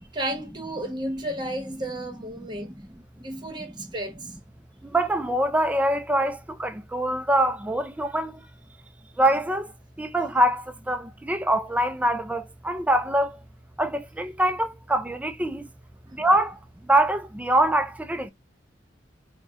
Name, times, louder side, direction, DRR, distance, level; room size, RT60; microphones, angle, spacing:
voice 1, 0.1-2.8 3.2-4.4 16.0-16.2, right 1 dB, 25° right, 1.0 m, -33 dB
voice 2, 4.8-8.4 9.2-9.7 10.0-13.4 13.8-15.7 16.2-18.3, right 1 dB, 10° right, 0.3 m, -24 dB
4.0 x 2.1 x 3.5 m
head